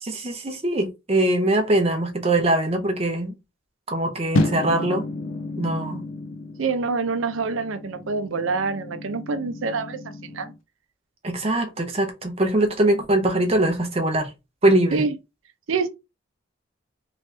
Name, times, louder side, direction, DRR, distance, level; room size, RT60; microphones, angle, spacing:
voice 1, 0.0-3.4 3.9-5.1 5.6-6.0 11.2-14.3 14.6-15.0, right 1 dB, 30° right, 0.7 m, -22 dB
sound 1, 4.3-10.6, left 2 dB, 70° left, 0.6 m, -30 dB
voice 2, 6.6-10.5 14.9-15.2 15.7-15.9, right 4 dB, 75° right, 0.5 m, -26 dB
3.1 x 2.9 x 3.3 m
head